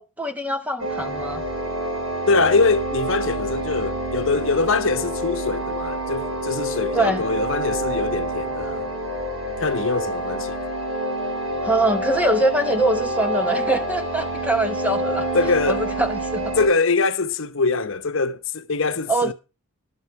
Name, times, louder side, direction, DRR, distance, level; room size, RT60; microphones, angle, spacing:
voice 1, 0.0-1.4 6.9-7.2 11.6-15.3 15.7-16.6 19.1-19.3, right 1 dB, 5° right, 0.8 m, -23 dB
sound 1, 0.8-16.7, right 1 dB, 60° right, 3.9 m, -27 dB
voice 2, 2.3-8.9 9.6-10.6 15.3-15.8 16.6-19.3, left 4 dB, 60° left, 0.9 m, -23 dB
11.5 x 8.5 x 4.7 m
head